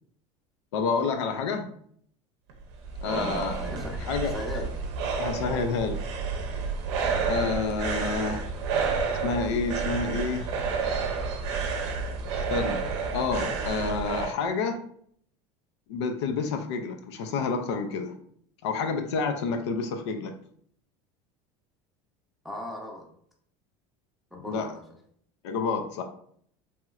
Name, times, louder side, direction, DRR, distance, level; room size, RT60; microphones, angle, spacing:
voice 1, 0.7-1.7 3.0-3.5 4.0-4.6 5.2-6.0 7.3-8.4 9.2-10.5 12.4-12.9 13.1-14.8 15.9-18.1 18.6-20.3 24.5-24.7 25.4-26.0, left 4 dB, 90° left, 5 dB, 0.4 m, -29 dB
sound 1, 2.5-14.3, right 5 dB, 80° right, 0.6 m, -30 dB
voice 2, 3.1-4.0 4.3-4.8 22.4-23.1 24.3-24.8, left 1 dB, ahead, -1 dB, 0.6 m, -37 dB
3.0 x 3.0 x 2.3 m, 0.64 s
supercardioid pair, 115°, 14 cm